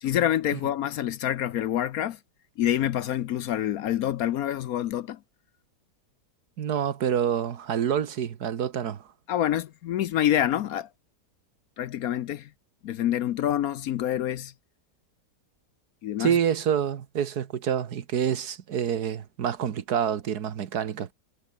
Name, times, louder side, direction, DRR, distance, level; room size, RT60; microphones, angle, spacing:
voice 1, 0.0-2.2 2.6-5.2 9.3-10.9 11.8-12.5 12.8-14.5 16.0-16.3, left 11 dB, 65° left, 1.0 m, -27 dB
voice 2, 6.6-9.1 16.2-21.1, right 8 dB, 65° right, 1.7 m, -27 dB
omnidirectional pair, 1.8 m